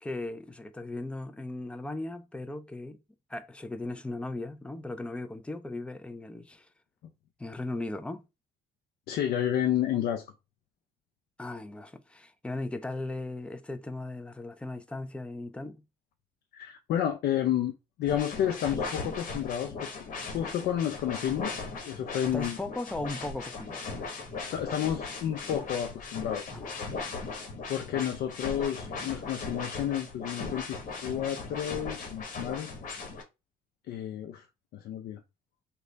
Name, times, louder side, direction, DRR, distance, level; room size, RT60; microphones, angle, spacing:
voice 1, 0.0-3.0 3.3-6.7 7.4-8.3 11.4-15.8 22.3-23.9 26.5-27.3, left 2 dB, 5° left, 0.4 m, -37 dB
voice 2, 9.1-10.2 16.5-19.9 20.3-22.6 24.5-26.5 27.7-32.7 33.9-34.5 34.7-35.2, left 10 dB, 70° left, 0.5 m, -31 dB
sound 1, 18.1-33.2, left 4 dB, 50° left, 1.2 m, -38 dB
3.1 x 2.3 x 3.8 m
cardioid pair, 110°, 17 cm